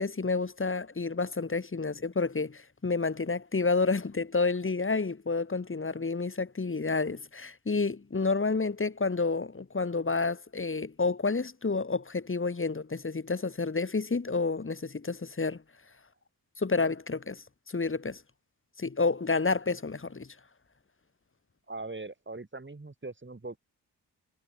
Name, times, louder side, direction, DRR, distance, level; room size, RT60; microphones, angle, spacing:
voice 1, 0.0-15.6 16.6-18.2 18.8-20.3, left 4 dB, 30° left, 2.2 m, -30 dB
voice 2, 21.7-23.6, right 3 dB, 25° right, 6.6 m, -41 dB
cardioid pair, 60°, 41 cm